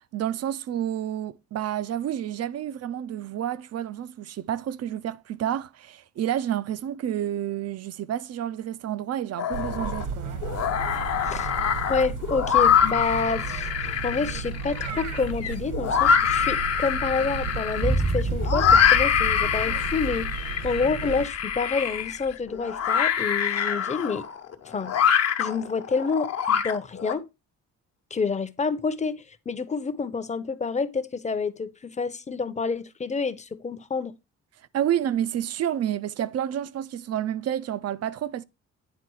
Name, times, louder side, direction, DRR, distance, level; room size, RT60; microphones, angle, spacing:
voice 1, 0.1-10.3 34.7-38.4, right 10 dB, 55° right, 0.6 m, -29 dB
sound 1, 9.4-10.0 10.4-27.1, left 8 dB, 55° left, 1.1 m, -25 dB
sound 2, 9.5-21.3, right 5 dB, 80° right, 1.7 m, -34 dB
voice 2, 11.9-20.3 20.6-24.3 24.6-24.9 25.4-27.3 28.1-34.1, left 4 dB, 25° left, 0.8 m, -28 dB
sound 3, 17.8-22.1 22.3-22.4, right 2 dB, 10° right, 0.6 m, -30 dB
9.4 x 3.8 x 4.7 m
cardioid pair, 90°, 30 cm